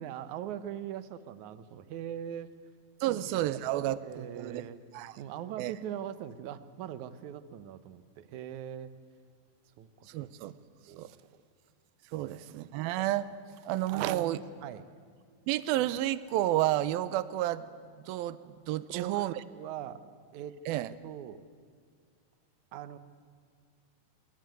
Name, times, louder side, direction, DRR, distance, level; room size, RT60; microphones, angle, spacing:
voice 1, 0.0-2.5 3.1-3.3 3.6-4.8 5.2-8.9 9.8-10.3 10.9-11.1 12.1-12.4 13.9-14.8 18.8-20.0 20.3-20.6 21.0-21.4 22.7-23.0, right 10 dB, 65° right, 2.2 m, -41 dB
voice 2, 3.0-4.6 4.9-5.2 5.6-5.7 10.1-10.5 11.0-11.1 12.1-13.3 13.7-14.4 15.5-17.7 18.1-19.3 20.7-20.9, right 14 dB, 80° right, 2.6 m, -31 dB
26.0 x 23.5 x 9.3 m
omnidirectional pair, 4.3 m